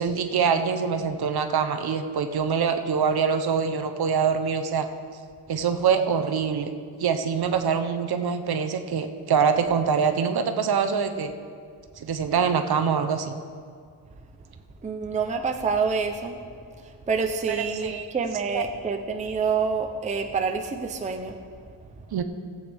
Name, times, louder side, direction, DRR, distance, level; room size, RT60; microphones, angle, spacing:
voice 1, 0.0-4.9 5.5-6.7 7.0-11.3 12.0-13.4 17.5-18.1 18.5-18.6 22.1-22.2, right 6 dB, 55° right, 8 dB, 0.8 m, -24 dB
voice 2, 14.8-16.4 17.1-21.4, right 5 dB, 15° right, 4 dB, 0.6 m, -27 dB
18.0 x 8.2 x 3.4 m, 2.1 s
wide cardioid pair, 135°, 47 cm